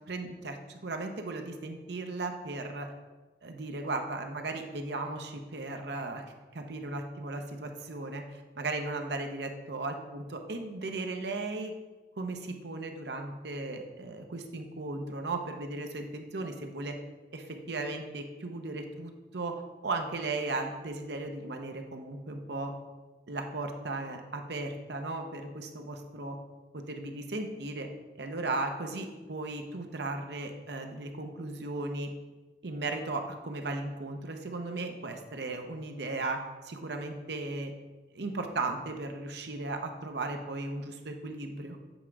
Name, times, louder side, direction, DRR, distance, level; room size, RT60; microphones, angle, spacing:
voice 1, 0.1-2.9 3.4-6.2 6.5-11.7 12.2-17.0 17.3-22.7 23.3-26.4 26.7-27.9 28.2-32.1 32.6-37.7 38.1-41.8, right 2 dB, 75° right, 5 dB, 0.8 m, -36 dB
8.1 x 3.7 x 4.6 m, 1.2 s
head